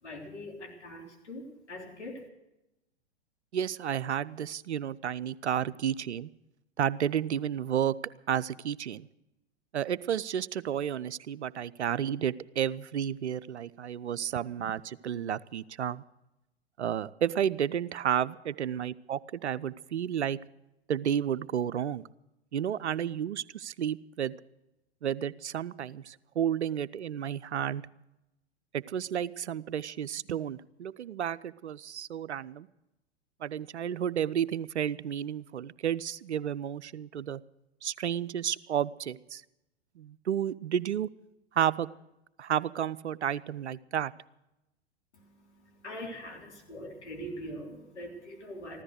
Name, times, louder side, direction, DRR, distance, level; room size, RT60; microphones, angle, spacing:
voice 1, 0.0-2.3 45.1-48.8, equal, 80° left, -1 dB, 3.6 m, -43 dB
voice 2, 3.5-6.3 6.8-8.0 8.3-9.1 9.7-16.0 16.8-20.4 20.9-22.0 22.5-24.3 25.0-27.8 28.7-32.7 33.4-37.4 37.8-39.4 40.0-41.1 41.5-41.9 42.4-44.1, right 9 dB, 80° right, 17 dB, 0.6 m, -31 dB
15.0 x 13.0 x 6.4 m, 0.93 s
figure-of-eight pair, 100°, 34 cm